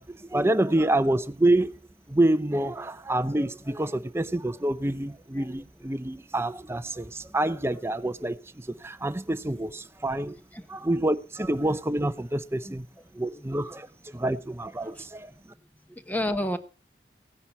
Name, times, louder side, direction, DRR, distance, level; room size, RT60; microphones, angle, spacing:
voice 1, 0.0-1.7 2.1-10.4 10.7-12.9 13.2-15.3, right 1 dB, 15° right, 0.6 m, -27 dB
voice 2, 7.7-8.3 10.5-10.7 12.6-12.8 13.1-13.9 14.1-14.2 14.9-15.1 15.9-16.6, left 1 dB, 10° left, 1.0 m, -34 dB
16.0 x 10.5 x 4.2 m
head